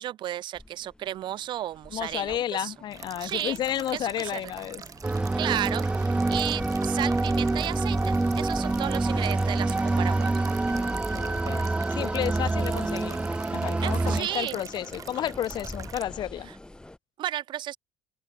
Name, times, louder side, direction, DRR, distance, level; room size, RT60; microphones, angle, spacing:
voice 1, 0.0-2.7 3.2-3.6 3.9-4.4 5.4-5.9 6.3-10.5 13.8-14.6 17.2-17.8, right 12 dB, 55° right, 1.9 m, -33 dB
sound 1, 0.5-17.0, left 1 dB, 10° left, 2.6 m, -44 dB
voice 2, 1.9-4.8 10.8-13.2 13.5-16.5, left 11 dB, 50° left, 1.1 m, -32 dB
sound 2, 2.9-16.1, right 7 dB, 35° right, 1.2 m, -44 dB
sound 3, 5.0-14.2, right 2 dB, 10° right, 0.5 m, -26 dB
open air
hypercardioid pair, 75°, 10 cm